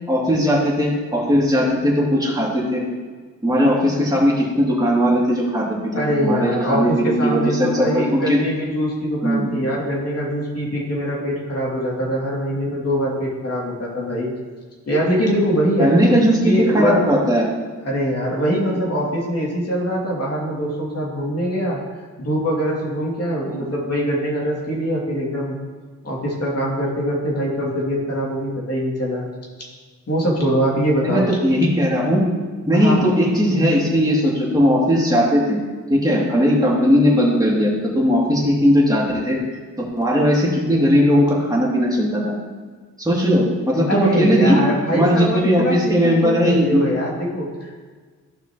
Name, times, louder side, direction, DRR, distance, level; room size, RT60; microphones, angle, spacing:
voice 1, 0.1-2.8 3.4-8.4 9.2-9.5 15.8-17.5 23.5-23.6 31.0-32.2 32.7-35.6 35.9-39.4 39.8-42.3 43.0-44.6 44.9-46.8, equal, 10° right, -5 dB, 2.8 m, -18 dB
voice 2, 5.9-14.3 14.9-16.0 16.4-17.2 17.8-21.8 22.2-25.6 26.0-29.3 30.1-31.3 32.7-33.2 43.9-47.8, equal, 50° left, -4 dB, 2.8 m, -23 dB
14.5 x 5.7 x 3.1 m, 1.5 s
cardioid pair, 80°, 32 cm